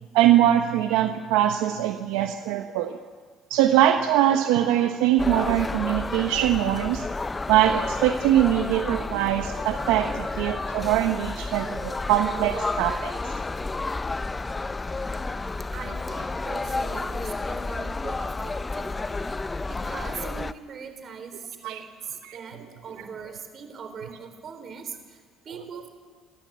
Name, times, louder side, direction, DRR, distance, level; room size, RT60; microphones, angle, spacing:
voice 1, 0.1-3.0 3.5-7.1 7.5-13.1 21.6-21.8 22.2-22.4, right 12 dB, 85° right, 6 dB, 1.0 m, -22 dB
sound 1, 5.2-20.5, left 3 dB, 20° left, 0.7 m, -31 dB
voice 2, 15.7-19.0 19.2-25.9, right 6 dB, 50° right, 7 dB, 3.9 m, -41 dB
29.0 x 13.0 x 7.6 m, 1.5 s
supercardioid pair, 85°, 0 cm